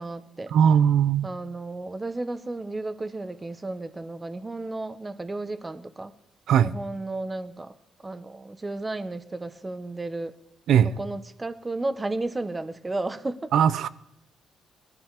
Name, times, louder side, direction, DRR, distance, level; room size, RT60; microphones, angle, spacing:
voice 1, 0.0-0.5 1.2-6.1 6.6-7.7 8.0-10.3 11.0-13.5, right 2 dB, 20° right, 1.3 m, -33 dB
voice 2, 0.5-1.3 6.5-6.7 10.7-11.0 13.5-13.9, right 8 dB, 75° right, 0.8 m, -19 dB
20.5 x 13.5 x 5.0 m
cardioid pair, 90°, 0 cm